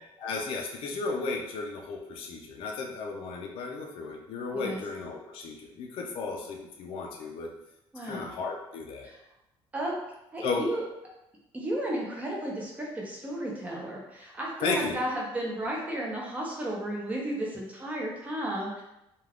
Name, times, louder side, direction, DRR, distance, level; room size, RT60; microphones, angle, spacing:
voice 1, 0.0-7.5 8.0-9.1 10.4-10.7 14.6-15.0, left 4 dB, 60° left, 1 dB, 0.4 m, -34 dB
voice 2, 7.9-8.3 9.0-9.2 9.7-9.9 10.3-10.8 11.5-18.8, right 1 dB, 15° right, -3 dB, 0.6 m, -33 dB
2.3 x 2.3 x 3.4 m, 0.88 s
cardioid pair, 170°, 10 cm